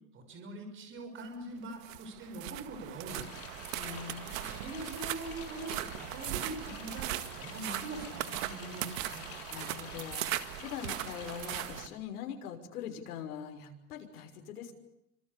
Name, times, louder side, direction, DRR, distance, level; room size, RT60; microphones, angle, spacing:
voice 1, 0.1-3.6 4.6-9.3, right 2 dB, 25° right, 5 dB, 6.3 m, -43 dB
sound 1, 1.6-11.9, right 15 dB, 60° right, 2.0 m, -39 dB
sound 2, 3.1-11.9, left 11 dB, 30° left, 3.7 m, -49 dB
voice 2, 3.7-4.5 9.5-14.7, left 8 dB, 75° left, 4 dB, 6.2 m, -43 dB
29.0 x 26.0 x 6.9 m, 0.81 s
supercardioid pair, 160°, 45 cm